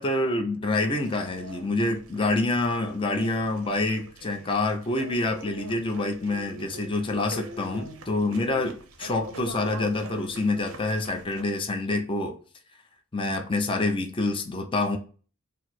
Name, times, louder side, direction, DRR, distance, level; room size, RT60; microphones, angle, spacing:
voice 1, 0.0-12.3 13.1-15.0, left 2 dB, 25° left, 0.6 m, -27 dB
sound 1, 0.9-11.4, right 2 dB, 80° right, 0.7 m, -43 dB
4.6 x 2.0 x 4.2 m
head